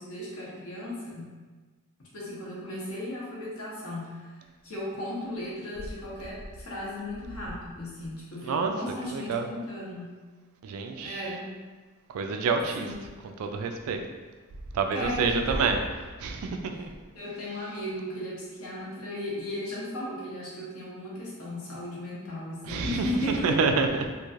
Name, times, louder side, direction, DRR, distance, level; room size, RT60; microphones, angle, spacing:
voice 1, 0.0-1.4 2.1-10.1 11.0-11.5 12.8-12.9 14.9-15.8 17.1-23.6 23.9-24.1, left 1 dB, 70° left, -6 dB, 0.9 m, -36 dB
voice 2, 9.1-9.5 10.6-11.2 12.1-12.9 13.4-14.0 14.7-15.8 16.2-16.9 22.6-24.1, right 4 dB, 70° right, 5 dB, 0.3 m, -27 dB
3.0 x 2.5 x 2.4 m, 1.3 s
head